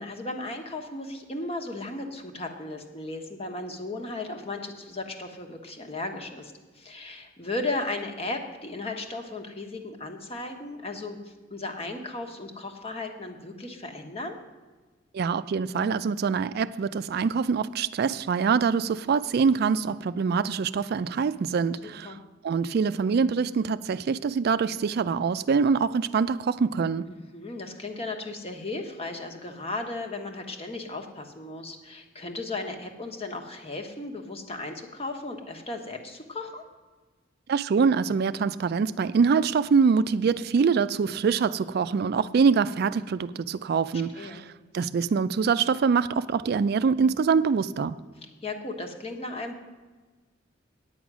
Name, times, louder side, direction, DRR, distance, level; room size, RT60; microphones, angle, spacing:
voice 1, 0.0-14.4 21.8-22.2 27.1-36.6 44.1-44.4 48.2-49.6, left 2 dB, 35° left, 4 dB, 1.2 m, -36 dB
voice 2, 15.1-22.1 22.4-27.0 37.5-44.4 44.7-47.9, right 5 dB, 55° right, 14 dB, 0.4 m, -24 dB
9.3 x 8.8 x 6.1 m, 1.3 s
head